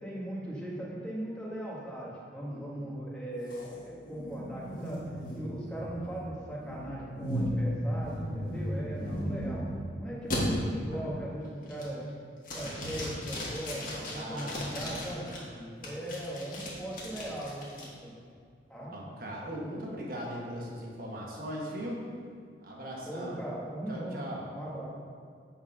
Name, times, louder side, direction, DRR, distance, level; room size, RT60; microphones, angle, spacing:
voice 1, 0.0-5.1 5.3-9.6 10.0-12.0 12.5-15.3 15.8-18.2 18.7-18.9 23.0-24.1 24.5-24.8, right 1 dB, 5° left, -6 dB, 1.5 m, -39 dB
voice 2, 2.5-3.0 9.0-9.2 12.6-12.8 13.7-15.7 18.8-22.0 22.6-23.4 23.9-24.4, equal, 50° right, -3 dB, 1.5 m, -40 dB
sound 1, 3.5-9.8 10.3-10.4 10.9-11.3 11.7-12.1 12.4-15.4 15.8-17.8, equal, 45° left, 1.6 m, -36 dB
8.5 x 4.4 x 5.4 m, 2.2 s
head